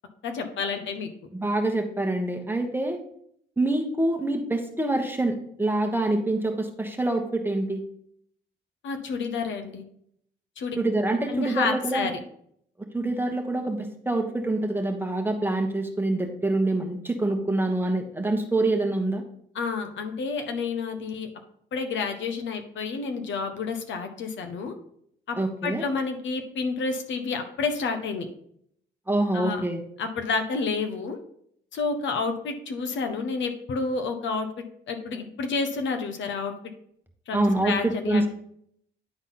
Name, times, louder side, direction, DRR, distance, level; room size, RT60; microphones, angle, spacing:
voice 1, 0.2-1.1 8.8-9.8 10.6-10.8 11.3-12.1 19.5-21.3 21.7-24.7 25.3-25.4 25.6-28.3 29.3-29.6 30.0-31.2 31.7-34.5 34.9-36.5 37.3-38.3, left 4 dB, 70° left, 6 dB, 1.1 m, -29 dB
voice 2, 1.3-3.0 3.6-7.8 10.8-12.1 12.9-19.2 25.4-25.8 29.1-29.8 37.3-38.3, right 2 dB, 10° right, 4 dB, 1.2 m, -26 dB
10.0 x 4.1 x 4.0 m, 0.68 s
cardioid pair, 90°, 20 cm